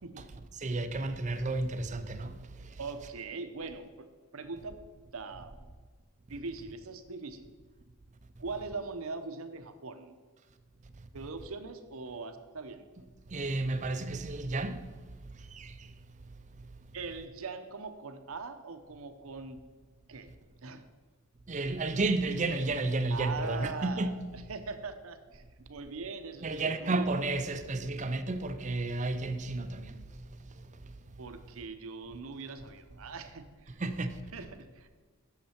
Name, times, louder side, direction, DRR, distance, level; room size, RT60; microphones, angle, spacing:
voice 1, 0.6-2.3 13.3-14.8 15.5-15.7 21.5-24.2 26.4-29.9 33.8-34.1, right 2 dB, 35° right, 0.5 m, -31 dB
voice 2, 2.8-4.1 4.3-4.7 5.1-5.5 6.3-7.5 8.4-10.2 11.1-12.9 16.9-19.6 20.1-20.3 20.6-20.9 23.1-25.4 25.7-27.1 31.2-33.8 34.3-34.9, right 4 dB, 65° right, 0.7 m, -41 dB
8.6 x 6.6 x 4.4 m
head